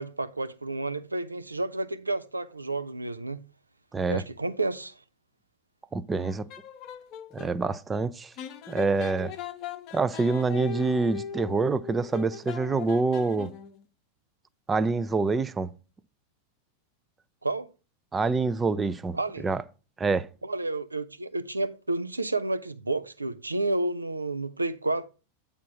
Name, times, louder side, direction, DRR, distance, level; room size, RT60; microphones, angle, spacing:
voice 1, 0.0-3.4 4.1-5.0 17.4-17.7 19.1-19.5 20.4-25.1, right 2 dB, 80° right, 0.5 m, -30 dB
voice 2, 3.9-4.2 5.9-6.5 7.3-8.3 8.7-9.3 9.9-13.5 14.7-15.7 18.1-19.6 20.0-20.3, right 3 dB, 15° right, 0.5 m, -26 dB
sound 1, 6.1-7.6 8.4-13.8, left 8 dB, 40° left, 0.7 m, -40 dB
8.4 x 3.6 x 6.0 m
figure-of-eight pair, 90°, 0 cm